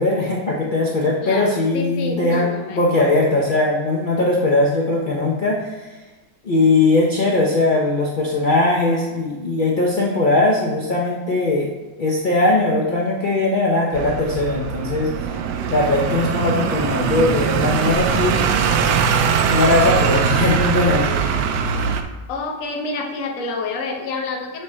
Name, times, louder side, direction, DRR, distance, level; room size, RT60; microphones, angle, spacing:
voice 1, 0.0-5.7 6.4-11.7 12.0-15.1 15.7-18.4 19.4-21.4, left 2 dB, 70° left, -4 dB, 0.4 m, -19 dB
voice 2, 1.2-3.6 22.3-24.6, left 3 dB, 55° left, 2 dB, 1.1 m, -28 dB
sound 1, 13.9-22.0, right 7 dB, 75° right, 1.1 m, -21 dB
7.5 x 3.2 x 4.2 m, 1.2 s
omnidirectional pair, 2.0 m